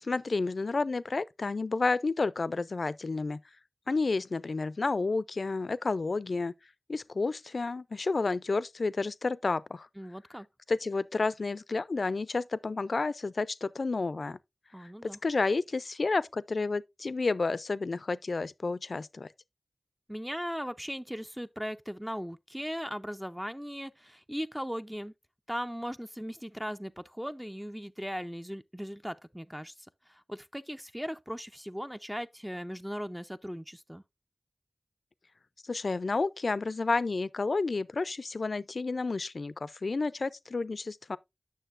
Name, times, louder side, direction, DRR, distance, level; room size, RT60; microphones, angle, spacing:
voice 1, 0.0-3.4 3.9-6.5 6.9-9.9 10.7-14.4 14.8-19.3 35.7-41.2, left 3 dB, 75° left, 0.4 m, -31 dB
voice 2, 10.0-10.5 14.7-15.2 20.1-25.1 25.5-29.7 30.1-34.0, equal, 5° right, 0.4 m, -38 dB
9.0 x 6.6 x 2.5 m
wide cardioid pair, 45°, 0 cm